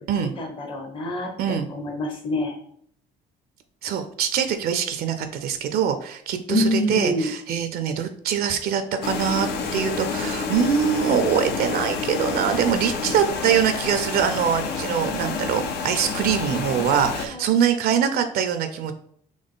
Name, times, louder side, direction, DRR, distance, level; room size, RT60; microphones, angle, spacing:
voice 1, 0.4-1.3 1.7-2.6 6.5-7.3 17.2-17.4, left 1 dB, 30° left, 2 dB, 0.7 m, -26 dB
voice 2, 3.8-9.5 9.7-18.9, right 8 dB, 65° right, 9 dB, 0.5 m, -23 dB
sound 1, 9.0-17.3, left 5 dB, 75° left, 0.6 m, -29 dB
4.0 x 3.1 x 3.6 m, 0.64 s
cardioid pair, 110°, 17 cm